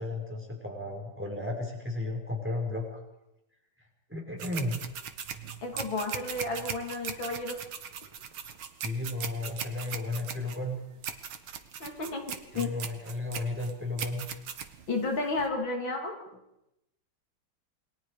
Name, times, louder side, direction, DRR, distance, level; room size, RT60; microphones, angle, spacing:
voice 1, 0.0-3.0 4.1-4.8 8.8-10.8 12.5-14.2, left 2 dB, 5° right, 0 dB, 5.2 m, -34 dB
sound 1, 4.4-15.5, right 7 dB, 80° right, 2.2 m, -39 dB
voice 2, 5.6-7.6 11.8-12.7 14.9-16.1, left 3 dB, 65° left, 2 dB, 3.7 m, -32 dB
28.5 x 21.5 x 5.0 m, 0.86 s
omnidirectional pair, 2.3 m